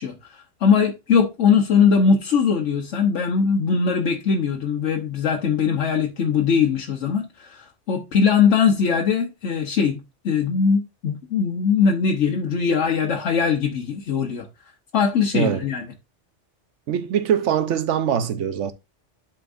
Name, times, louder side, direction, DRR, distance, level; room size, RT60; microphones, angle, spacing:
voice 1, 0.0-10.0 10.2-14.4 14.9-15.9, left 6 dB, 85° left, 1.2 m, -21 dB
voice 2, 15.3-15.6 16.9-18.7, right 8 dB, 80° right, 1.1 m, -22 dB
11.0 x 4.4 x 2.5 m
omnidirectional pair, 1.2 m